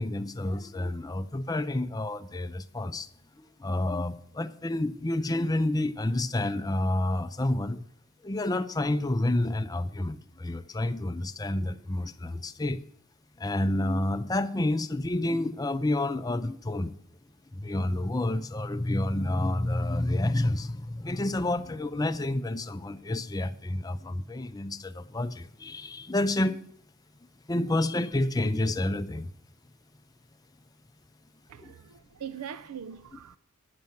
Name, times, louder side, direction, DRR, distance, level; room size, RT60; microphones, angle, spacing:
voice 1, 0.0-3.1 3.4-7.8 8.2-12.8 13.4-17.0 17.5-26.6 27.5-29.3 31.6-31.7, left 1 dB, 15° left, 0.5 m, -29 dB
voice 2, 31.5-33.4, right 8 dB, 75° right, 0.4 m, -41 dB
10.5 x 7.2 x 7.8 m
head